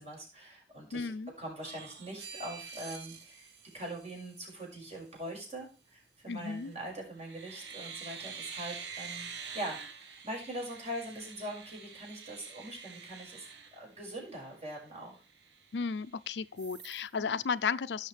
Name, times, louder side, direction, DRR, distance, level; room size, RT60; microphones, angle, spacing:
voice 1, 0.0-13.5 13.7-15.2 17.2-17.4, right 1 dB, 40° right, 5.7 m, -42 dB
voice 2, 0.9-1.3 6.3-6.7 15.7-18.1, left 5 dB, 75° left, 0.5 m, -34 dB
sound 1, 1.6-4.6 6.4-6.8 7.2-14.4 14.9-15.0 15.3-16.1 16.6-17.1, right 6 dB, 75° right, 1.3 m, -47 dB
17.0 x 6.5 x 3.3 m
head